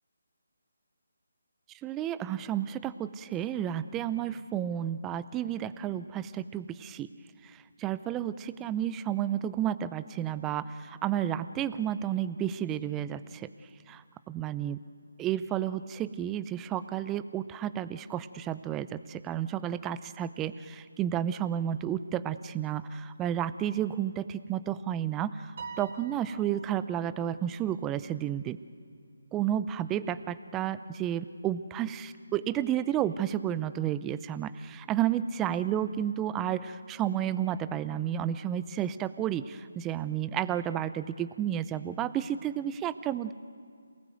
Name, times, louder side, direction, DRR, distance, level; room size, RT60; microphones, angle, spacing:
voice 1, 1.8-7.1 7.8-13.5 13.9-14.0 14.3-14.8 15.2-28.6 29.3-43.3, right 10 dB, 15° right, 14 dB, 0.5 m, -31 dB
Piano, 25.6-27.1, right 4 dB, 45° right, 2.9 m, -44 dB
27.5 x 18.5 x 7.9 m, 2.2 s
figure-of-eight pair, 155°, 0 cm